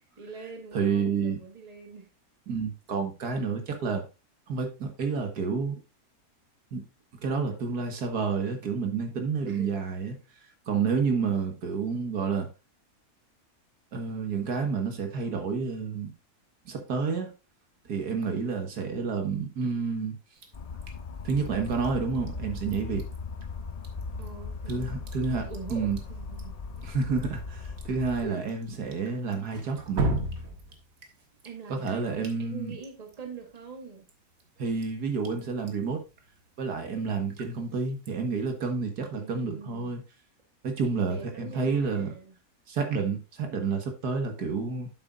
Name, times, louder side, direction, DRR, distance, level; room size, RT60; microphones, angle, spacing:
voice 1, 0.2-2.1 9.4-9.8 11.0-11.4 18.3-18.6 24.2-25.1 25.4-26.9 28.2-28.5 31.4-34.1 39.1-39.9 40.8-42.4, right 5 dB, 25° right, 1.6 m, -43 dB
voice 2, 0.7-1.4 2.5-4.0 4.5-5.8 6.7-6.9 7.2-10.2 10.7-12.5 13.9-16.1 16.7-17.3 17.9-20.2 21.2-23.1 24.7-26.0 26.8-30.1 31.7-32.7 34.6-36.0 36.6-40.0 40.6-42.1 42.7-44.9, right 5 dB, 75° right, 2.0 m, -29 dB
Drip, 20.4-38.6, right 2 dB, 60° right, 1.8 m, -41 dB
sound 1, 20.5-28.3, left 4 dB, 80° left, 0.3 m, -38 dB
8.9 x 7.6 x 2.5 m
omnidirectional pair, 1.7 m